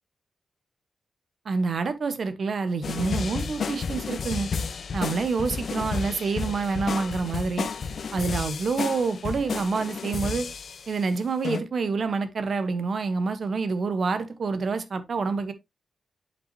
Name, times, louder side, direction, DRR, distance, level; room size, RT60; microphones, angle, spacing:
voice 1, 1.4-4.5 4.9-7.7 8.1-10.5 10.9-15.5, right 4 dB, 55° right, 1.2 m, -27 dB
sound 1, 2.8-11.0 11.4-11.6, left 5 dB, 60° left, 0.7 m, -32 dB
8.7 x 5.6 x 3.0 m
wide cardioid pair, 120°, 0 cm